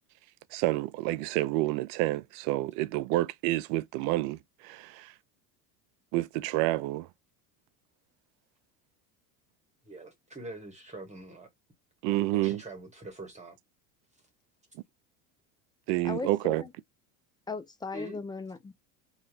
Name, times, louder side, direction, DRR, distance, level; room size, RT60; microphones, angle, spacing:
voice 1, 0.5-5.1 6.1-7.1 12.0-12.6 15.9-16.6, right 17 dB, 65° right, 0.5 m, -29 dB
voice 2, 9.8-11.5 12.1-13.6 17.9-18.2, right 1 dB, 15° right, 1.2 m, -44 dB
voice 3, 16.0-16.7 17.5-18.7, left 4 dB, 10° left, 0.3 m, -37 dB
2.8 x 2.3 x 3.8 m
supercardioid pair, 90°, 45 cm